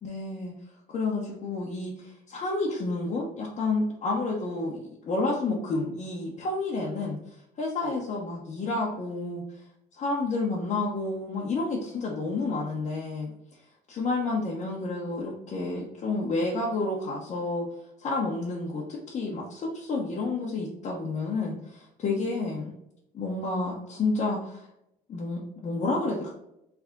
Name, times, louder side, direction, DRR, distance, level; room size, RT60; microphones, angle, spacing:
voice 1, 0.0-0.5 0.9-7.2 7.6-9.4 10.0-13.3 13.9-17.7 18.0-22.7 23.1-24.7 25.1-26.3, left 3 dB, 45° left, -4 dB, 0.9 m, -30 dB
3.5 x 3.4 x 3.6 m, 0.81 s
cardioid pair, 110°, 17 cm